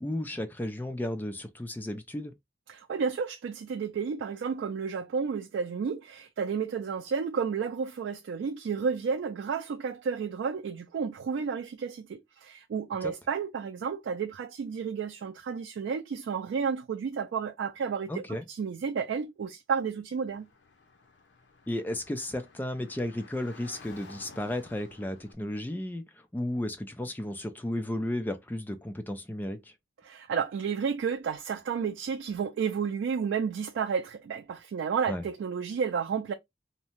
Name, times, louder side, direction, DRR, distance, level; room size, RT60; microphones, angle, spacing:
voice 1, 0.0-2.3 13.0-13.1 18.1-18.4 21.7-26.0 26.3-29.7 35.1-35.2, left 1 dB, 10° left, 0.3 m, -34 dB
voice 2, 2.7-20.5 30.0-36.3, right 6 dB, 90° right, 0.3 m, -31 dB
Car / Traffic noise roadway noise, 20.3-25.3, left 4 dB, 85° left, 0.6 m, -53 dB
2.7 x 2.1 x 2.8 m
head